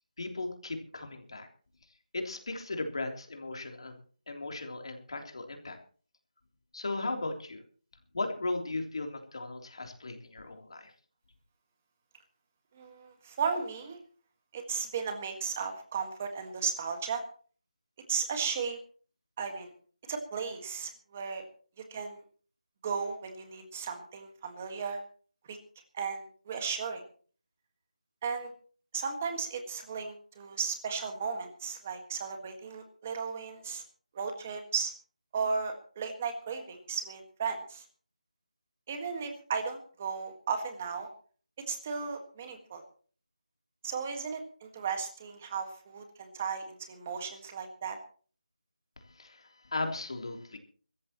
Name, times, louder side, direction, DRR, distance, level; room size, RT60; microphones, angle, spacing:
voice 1, 0.2-1.5 2.1-4.0 4.3-5.8 6.7-7.6 8.1-10.9 49.1-50.6, left 2 dB, 40° left, 3 dB, 3.3 m, -37 dB
voice 2, 12.7-14.0 14.5-17.2 18.1-18.8 19.4-19.7 20.1-21.4 21.8-22.2 22.8-25.0 25.5-25.6 25.9-27.0 28.2-28.5 28.9-33.8 34.1-34.9 35.3-37.8 38.9-41.1 41.7-42.8 43.8-48.0, right 5 dB, 15° right, 6 dB, 1.6 m, -35 dB
24.0 x 14.0 x 3.0 m, 0.43 s
figure-of-eight pair, 180°, 4 cm